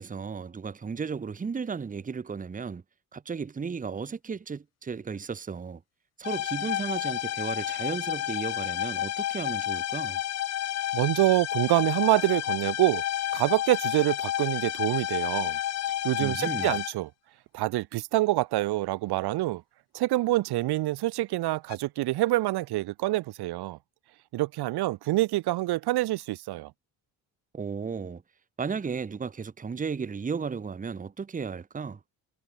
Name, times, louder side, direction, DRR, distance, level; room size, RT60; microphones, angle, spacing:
voice 1, 0.0-2.8 3.1-5.8 6.2-10.2 16.2-16.7 27.5-28.2 28.6-32.0, right 5 dB, 20° right, 0.8 m, -34 dB
sound 1, 6.2-16.9 21.7-21.8, left 12 dB, 45° left, 0.4 m, -30 dB
voice 2, 10.9-13.0 13.3-15.6 16.0-17.1 17.5-19.6 19.9-23.8 24.3-26.7, right 17 dB, 90° right, 0.9 m, -26 dB
cardioid pair, 110°, 38 cm